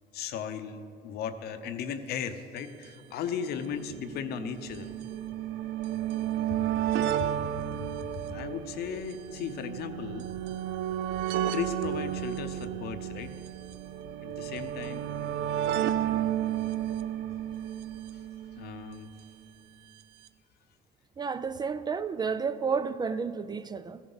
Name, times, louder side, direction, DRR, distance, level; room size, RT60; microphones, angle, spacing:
voice 1, 0.1-4.9 7.4-7.7 8.1-10.3 11.5-13.3 14.2-15.0 18.1-18.2 18.6-19.1, left 7 dB, 70° left, 0.8 m, -36 dB
sound 1, 2.6-2.7 2.8-2.9 3.8-19.0 20.0-20.1 20.3-20.4, right 11 dB, 90° right, 0.5 m, -32 dB
voice 2, 21.2-24.0, right 5 dB, 25° right, 0.3 m, -31 dB
15.0 x 11.0 x 4.0 m
cardioid pair, 110°, 17 cm